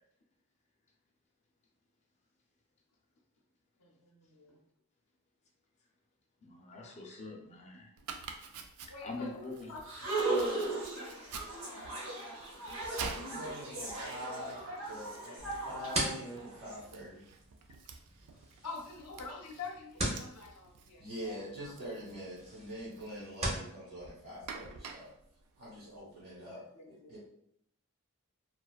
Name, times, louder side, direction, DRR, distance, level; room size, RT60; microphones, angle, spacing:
voice 1, 3.8-4.6 6.8-6.9 8.9-12.6 18.6-21.7 26.4-27.2, left 3 dB, 85° left, -1 dB, 0.5 m, -48 dB
voice 2, 6.4-7.9 8.2-8.5 9.0-9.8 15.5-15.7, left 3 dB, 30° left, 1 dB, 0.4 m, -45 dB
Domestic sounds home sounds, 8.0-26.4, right 5 dB, 85° right, 0.3 m, -49 dB
sound 1, 9.8-16.8, right 2 dB, 65° right, 0.7 m, -37 dB
voice 3, 13.3-15.4 15.6-17.2 21.0-25.1 25.6-27.2, equal, 50° right, -8 dB, 1.1 m, -44 dB
sound 2, 15.4-23.7, right 1 dB, 30° right, 0.6 m, -41 dB
2.4 x 2.3 x 2.2 m, 0.70 s
head